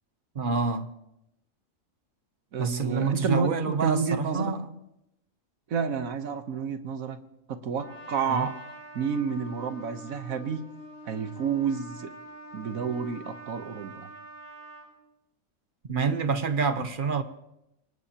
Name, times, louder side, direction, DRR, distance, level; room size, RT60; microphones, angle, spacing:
voice 1, 0.3-0.9 2.6-4.7 8.3-8.5 15.9-17.2, right 5 dB, 45° right, 1.0 m, -27 dB
voice 2, 2.5-4.5 5.7-7.2 7.5-8.6 8.9-10.6 11.0-12.1 12.5-14.1, right 6 dB, 90° right, 1.5 m, -30 dB
Trumpet, 7.8-14.9, equal, 70° left, 7.8 m, -45 dB
25.5 x 19.0 x 2.9 m
omnidirectional pair, 1.4 m